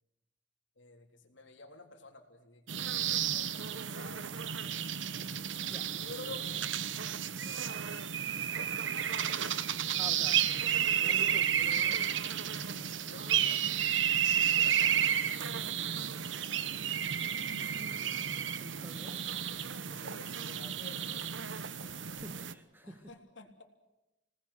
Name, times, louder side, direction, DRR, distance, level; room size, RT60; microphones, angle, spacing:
voice 1, 0.7-4.8 5.9-6.7 7.3-8.2 8.6-8.9 12.7-17.0 19.8-22.5 22.8-23.6, left 3 dB, 80° left, 3.5 m, -52 dB
sound 1, 2.7-22.5, right 9 dB, 85° right, 1.1 m, -32 dB
voice 2, 10.0-12.1 17.7-19.3 22.0-23.1, equal, 10° right, 1.5 m, -50 dB
27.0 x 19.0 x 8.1 m
head